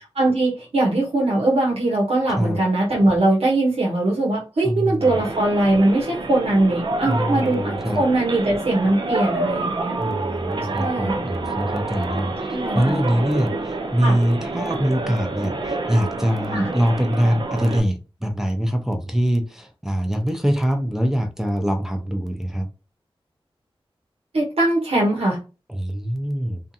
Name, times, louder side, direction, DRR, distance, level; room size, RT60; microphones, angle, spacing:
voice 1, 0.2-10.0 10.8-11.2 12.5-13.0 14.0-14.2 16.5-16.7 24.3-25.4, right 2 dB, 85° right, 0.9 m, -21 dB
voice 2, 4.6-5.2 7.0-8.0 10.0-22.7 25.7-26.6, equal, 5° right, 0.5 m, -23 dB
sound 1, 5.0-17.8, right 2 dB, 50° right, 0.5 m, -28 dB
2.4 x 2.4 x 2.6 m
wide cardioid pair, 55°, 10 cm